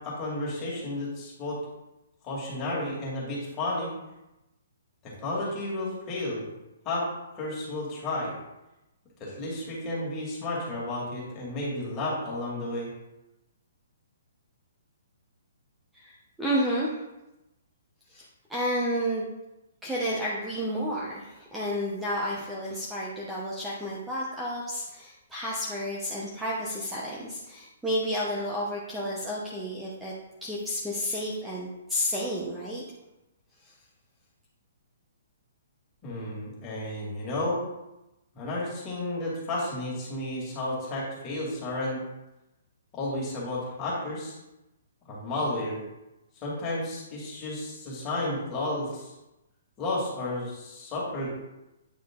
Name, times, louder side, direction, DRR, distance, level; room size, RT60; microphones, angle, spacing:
voice 1, 0.0-1.6 2.2-3.9 5.0-6.5 6.8-7.1 7.3-8.3 9.2-12.9 36.0-37.6 38.3-42.0 42.9-44.4 45.1-45.8 46.4-49.1 49.8-51.3, left 1 dB, 20° left, -5 dB, 2.2 m, -32 dB
voice 2, 15.9-17.0 18.1-18.2 18.5-19.3 19.8-30.1 30.4-32.8 33.6-33.7, equal, 5° right, -6 dB, 0.8 m, -31 dB
8.8 x 3.8 x 3.7 m, 0.95 s
hypercardioid pair, 160°, 0 cm